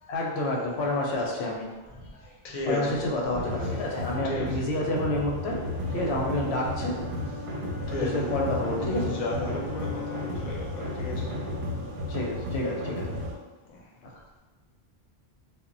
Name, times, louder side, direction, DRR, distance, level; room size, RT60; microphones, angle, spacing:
voice 1, 0.1-1.7 2.7-5.6 5.9-7.0 7.9-9.2 12.1-13.1 14.0-14.1, left 1 dB, 85° left, -1 dB, 0.9 m, -29 dB
voice 2, 2.0-3.0 4.2-4.6 5.9-6.2 7.9-8.3 8.8-11.3 13.6-13.9, left 2 dB, 45° left, -2 dB, 0.5 m, -34 dB
sound 1, 3.4-13.3, left 1 dB, 60° right, 0.6 m, -33 dB
Bowed string instrument, 5.4-10.6, left 5 dB, 10° right, 0.6 m, -42 dB
2.1 x 2.0 x 3.7 m, 1.2 s
omnidirectional pair, 1.1 m